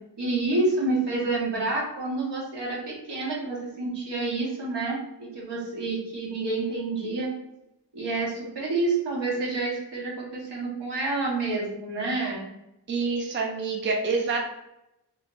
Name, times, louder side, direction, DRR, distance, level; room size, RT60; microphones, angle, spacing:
voice 1, 0.2-7.3 7.9-12.5, right 3 dB, 70° right, -4 dB, 1.2 m, -28 dB
voice 2, 12.9-14.4, right 4 dB, 30° right, 0 dB, 0.4 m, -27 dB
3.3 x 2.5 x 2.9 m, 0.86 s
wide cardioid pair, 120°, 43 cm